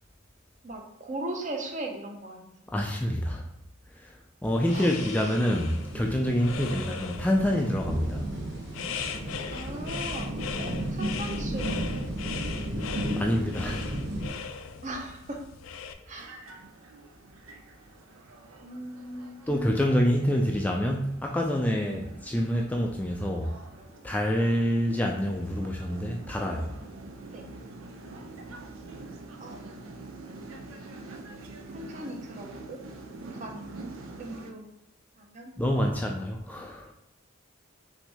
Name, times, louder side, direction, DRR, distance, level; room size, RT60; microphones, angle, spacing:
voice 1, 0.6-2.5 4.7-5.3 6.6-6.9 9.5-10.3 10.6-11.9 12.4-12.8 14.8-15.4 16.1-16.4 18.6-19.8 27.3-27.4 29.4-30.2 31.7-32.8 33.3-33.8 34.2-34.7 35.2-35.5, right 1 dB, 40° right, 2 dB, 0.7 m, -39 dB
voice 2, 2.7-3.4 4.0-4.1 4.4-8.3 13.2-13.9 16.2-16.3 19.5-23.5 24.0-26.8 35.6-36.9, equal, 10° left, 1 dB, 0.3 m, -27 dB
sound 1, 4.4-15.9, left 6 dB, 75° left, 0.4 m, -39 dB
sound 2, 5.4-14.3, right 1 dB, 60° right, 0.9 m, -34 dB
sound 3, 16.2-34.5, right 2 dB, 90° right, 0.6 m, -46 dB
5.8 x 2.7 x 3.4 m, 0.81 s
head